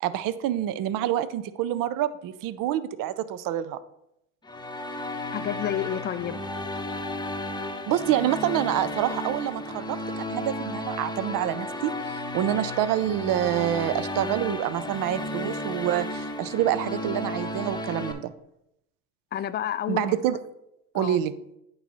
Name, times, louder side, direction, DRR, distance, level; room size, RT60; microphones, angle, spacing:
voice 1, 0.0-3.8 7.9-11.9 12.3-18.3 19.9-20.4 20.9-21.3, right 12 dB, 60° right, 14 dB, 0.6 m, -27 dB
sound 1, 4.4-18.1, left 1 dB, 10° left, 0.8 m, -33 dB
voice 2, 5.3-6.4 19.3-20.1 20.9-21.2, left 10 dB, 30° left, 14 dB, 0.4 m, -30 dB
8.9 x 3.1 x 5.4 m, 0.81 s
supercardioid pair, 90°, 38 cm